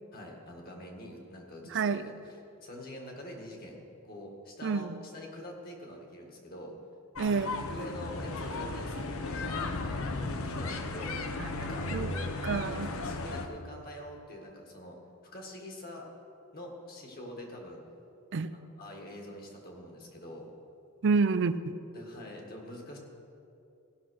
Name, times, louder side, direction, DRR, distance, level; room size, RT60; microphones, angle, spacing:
voice 1, 0.1-2.4 2.6-6.7 7.7-11.2 11.6-15.0 15.3-16.0 16.5-17.8 18.5-20.5 21.9-23.0, left 1 dB, 45° left, 1 dB, 1.7 m, -45 dB
voice 2, 1.7-2.1 4.6-4.9 7.2-7.6 11.4-11.5 11.9-12.1 12.4-12.9 18.3-18.5 21.0-21.7, right 4 dB, 55° right, 12 dB, 0.4 m, -28 dB
sound 1, 7.1-13.5, left 3 dB, 70° left, 0.8 m, -35 dB
16.0 x 5.8 x 6.3 m, 2.7 s
head